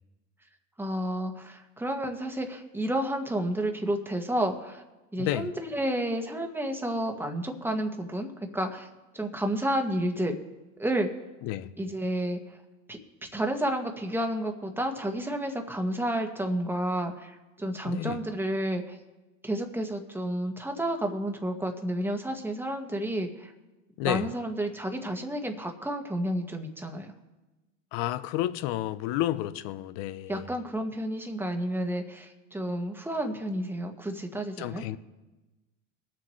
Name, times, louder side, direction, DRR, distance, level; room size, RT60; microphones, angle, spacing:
voice 1, 0.8-4.8 5.1-8.9 9.1-10.4 10.8-11.1 11.8-12.4 12.9-19.0 19.4-23.5 24.0-27.1 30.3-34.8, right 1 dB, 5° right, 1.6 m, -31 dB
voice 2, 5.2-5.5 11.4-11.7 17.8-18.2 24.0-24.3 27.9-30.4 34.6-35.0, left 14 dB, 70° left, 0.8 m, -31 dB
22.5 x 7.6 x 3.2 m
supercardioid pair, 90°, 39 cm